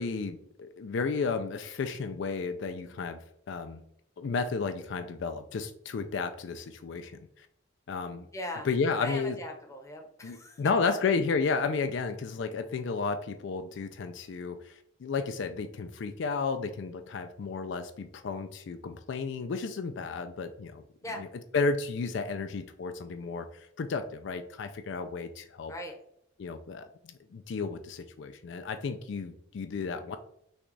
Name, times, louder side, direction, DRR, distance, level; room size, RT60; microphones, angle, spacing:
voice 1, 0.0-3.2 3.5-3.8 4.2-7.5 7.9-8.3 8.6-9.4 10.2-20.8 21.2-21.3 21.5-25.7 26.4-30.2, left 4 dB, 60° left, 8 dB, 0.3 m, -32 dB
voice 2, 8.3-8.7 9.0-10.9 21.0-21.2 25.7-26.0, left 1 dB, 15° left, 2 dB, 0.7 m, -39 dB
5.9 x 2.3 x 3.9 m, 0.72 s
head